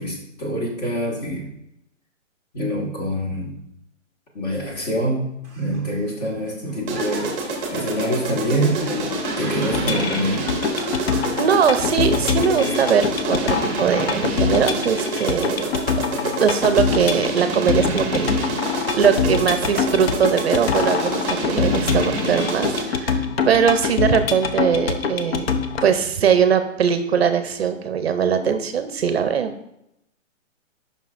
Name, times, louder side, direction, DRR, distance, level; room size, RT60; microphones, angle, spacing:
voice 1, 0.0-1.5 2.5-3.6 4.3-5.2 5.5-7.3 7.7-10.5, equal, 30° left, -1 dB, 1.5 m, -25 dB
Laughter, 5.4-13.8 14.3-14.9, right 2 dB, 5° left, 1.1 m, -40 dB
sound 1, 6.9-23.0, right 2 dB, 15° right, 0.9 m, -28 dB
sound 2, 9.7-25.9, left 6 dB, 50° left, 0.6 m, -24 dB
voice 2, 11.4-15.6 16.1-25.5 25.8-29.5, right 7 dB, 50° right, 9 dB, 0.6 m, -21 dB
8.9 x 5.7 x 2.5 m, 0.82 s
hypercardioid pair, 165°, 39 cm